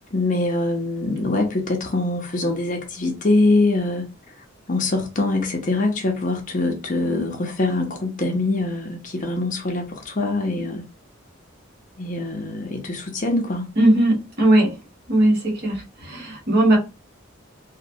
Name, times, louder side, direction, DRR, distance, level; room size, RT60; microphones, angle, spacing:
voice 1, 0.0-4.1 4.7-10.8 12.0-13.7, left 2 dB, 40° left, 0.6 m, -23 dB
voice 2, 13.8-14.7 15.1-16.8, right 1 dB, 55° right, 1.2 m, -18 dB
3.0 x 2.1 x 2.6 m
head